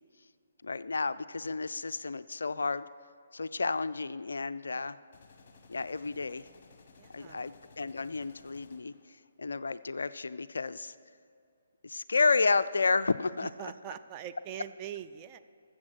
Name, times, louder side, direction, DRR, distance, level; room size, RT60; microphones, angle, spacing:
voice 1, 0.6-2.9 3.3-5.0 5.7-6.4 7.1-8.9 9.4-10.9 11.8-13.5, left 4 dB, 65° left, 14 dB, 0.3 m, -31 dB
sound 1, 5.1-9.1, left 4 dB, 40° left, 1.2 m, -58 dB
voice 2, 6.9-7.5 13.4-15.4, right 10 dB, 25° right, 8 dB, 0.4 m, -43 dB
13.0 x 7.6 x 6.2 m, 2.4 s
figure-of-eight pair, 135°, 0 cm